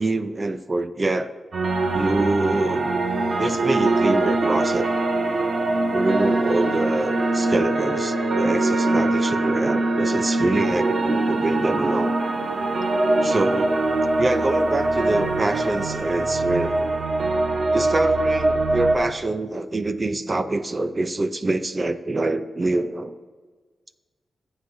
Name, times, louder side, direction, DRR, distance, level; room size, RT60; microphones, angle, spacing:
voice 1, 0.0-1.3 1.9-2.9 3.4-4.9 5.9-12.1 13.2-13.8 14.2-16.9 17.7-23.2, right 2 dB, 30° right, 11 dB, 0.5 m, -25 dB
sound 1, 1.5-19.0, right 2 dB, 65° right, 1.3 m, -22 dB
20.5 x 8.1 x 2.7 m, 1.4 s
cardioid pair, 85°, 0 cm